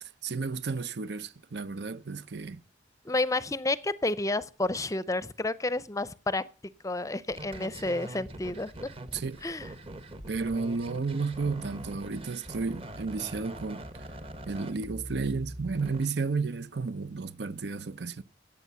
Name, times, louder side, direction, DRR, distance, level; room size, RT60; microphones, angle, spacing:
voice 1, 0.0-2.6 9.1-9.4 10.3-14.1 14.4-18.2, right 4 dB, 70° right, 0.7 m, -32 dB
voice 2, 3.0-6.4 6.8-8.7 9.4-9.7, left 2 dB, 20° left, 0.6 m, -30 dB
sound 1, 7.3-16.1, right 1 dB, 35° right, 1.2 m, -43 dB
14.5 x 8.2 x 6.9 m
head